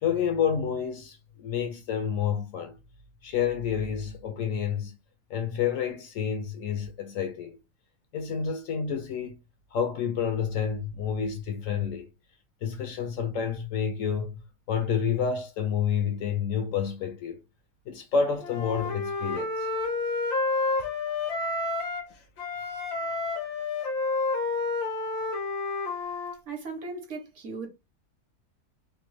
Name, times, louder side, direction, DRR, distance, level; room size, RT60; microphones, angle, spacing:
voice 1, 0.0-2.8 3.2-5.0 5.3-7.6 8.1-9.4 9.7-12.1 12.6-14.4 14.7-17.4 17.9-19.7, left 7 dB, 70° left, 0.8 m, -29 dB
Wind instrument woodwind instrument, 18.4-22.1 22.4-26.4, left 3 dB, 85° left, 1.4 m, -30 dB
voice 2, 26.5-27.7, right 4 dB, 60° right, 1.0 m, -37 dB
3.2 x 2.2 x 3.0 m
omnidirectional pair, 1.6 m